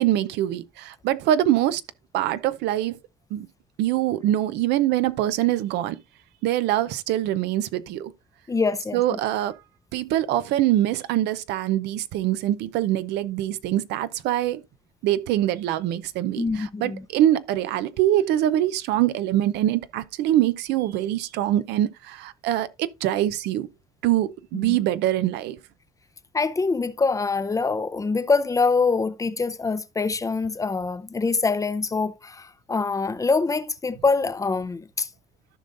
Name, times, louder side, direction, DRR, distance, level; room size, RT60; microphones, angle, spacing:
voice 1, 0.0-1.8 2.1-3.0 3.3-3.5 3.8-6.0 6.4-8.1 8.9-9.6 9.9-14.6 15.0-23.7 24.0-25.6, right 13 dB, 85° right, 0.6 m, -24 dB
voice 2, 8.5-9.2 16.4-17.0 24.5-24.8 26.3-35.1, left 4 dB, 20° left, 0.5 m, -24 dB
14.0 x 5.4 x 2.6 m
cardioid pair, 110°, 17 cm